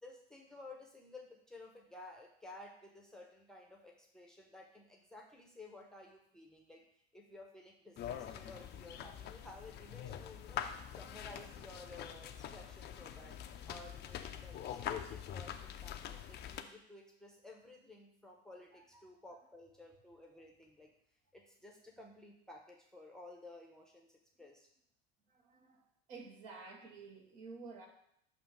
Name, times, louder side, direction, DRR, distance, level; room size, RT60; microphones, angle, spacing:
voice 1, 0.0-6.8 7.1-10.7 10.9-13.4 13.7-20.9 21.3-24.7, left 2 dB, ahead, 0 dB, 0.8 m, -54 dB
sound 1, 8.0-16.6, left 9 dB, 30° left, 0.5 m, -44 dB
voice 2, 25.3-25.8 26.1-27.9, right 4 dB, 55° right, 1 dB, 1.4 m, -51 dB
6.9 x 2.9 x 5.8 m, 0.72 s
figure-of-eight pair, 70°, 32 cm